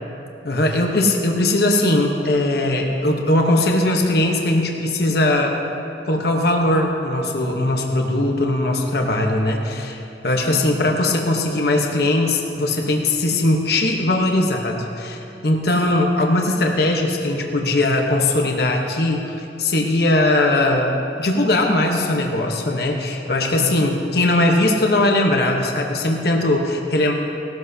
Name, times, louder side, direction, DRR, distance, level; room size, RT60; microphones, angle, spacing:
voice 1, 0.4-5.6 6.0-10.0 10.2-27.1, left 1 dB, 60° left, 1 dB, 1.1 m, -20 dB
18.0 x 13.0 x 2.8 m, 2.8 s
head